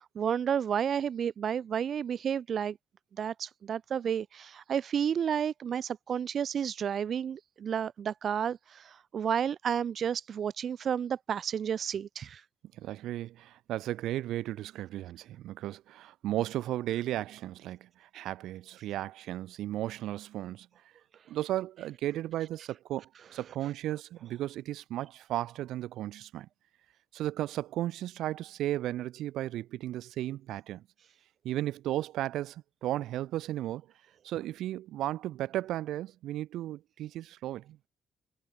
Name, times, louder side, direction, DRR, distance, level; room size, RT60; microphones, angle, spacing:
voice 1, 0.0-2.8 3.2-12.4, right 8 dB, 55° right, 2.5 m, -31 dB
voice 2, 12.7-20.7 21.3-26.5 27.1-30.8 31.4-33.9 34.2-37.8, right 14 dB, 90° right, 4.0 m, -35 dB
cardioid pair, 110°, 0 cm